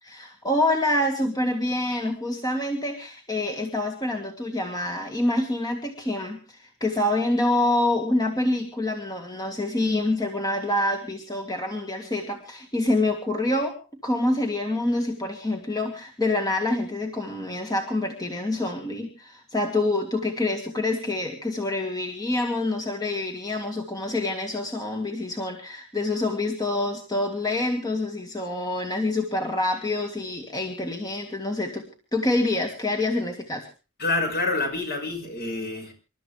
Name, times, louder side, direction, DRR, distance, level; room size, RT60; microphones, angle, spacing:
voice 1, 0.0-13.8 14.0-31.9 32.1-33.7, left 2 dB, 20° left, 3 dB, 1.9 m, -26 dB
voice 2, 34.0-35.9, left 3 dB, 50° left, 4 dB, 5.5 m, -27 dB
27.0 x 12.5 x 3.4 m, 0.34 s
head